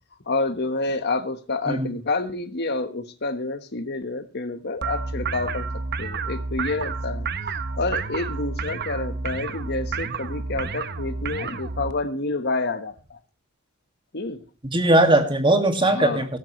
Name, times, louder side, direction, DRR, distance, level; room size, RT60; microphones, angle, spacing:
voice 1, 0.3-5.7 6.0-7.3 7.7-13.2 14.1-14.4 15.8-16.3, left 3 dB, 50° left, 9 dB, 1.4 m, -28 dB
sound 1, 4.8-11.9, right 4 dB, 50° right, 0.9 m, -30 dB
voice 2, 14.7-16.4, right 1 dB, 25° right, 5 dB, 2.2 m, -19 dB
16.5 x 13.0 x 3.2 m, 0.34 s
head